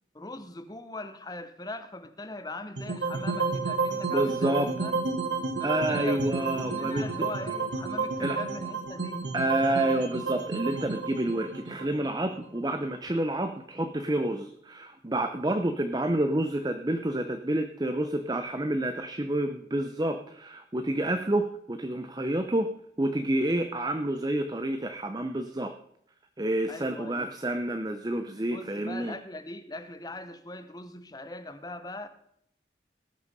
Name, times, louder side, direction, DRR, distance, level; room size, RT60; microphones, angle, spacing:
voice 1, 0.1-5.0 5.6-9.3 26.7-27.3 28.5-32.1, left 2 dB, 20° left, 10 dB, 0.8 m, -41 dB
sound 1, 2.8-13.0, right 4 dB, 75° right, 1.4 m, -31 dB
voice 2, 4.1-4.7 5.6-7.3 8.2-8.4 9.3-22.7 23.0-25.7 26.4-29.2, right 1 dB, 20° right, 7 dB, 0.6 m, -29 dB
18.5 x 6.3 x 5.4 m, 0.71 s
head